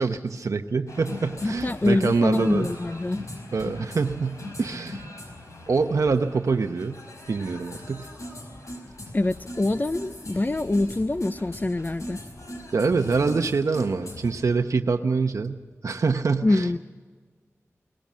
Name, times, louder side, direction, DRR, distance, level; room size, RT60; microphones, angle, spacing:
voice 1, 0.0-2.7 3.5-5.0 5.7-7.0 7.3-8.1 12.7-16.7, right 4 dB, 85° right, 6 dB, 0.8 m, -25 dB
sound 1, 0.9-14.3, left 1 dB, 85° left, 5.0 m, -40 dB
voice 2, 1.4-3.2 9.1-12.2 16.4-16.8, left 2 dB, 35° left, 12 dB, 0.6 m, -25 dB
23.0 x 19.5 x 7.5 m, 1.5 s
wide cardioid pair, 70°, 5 cm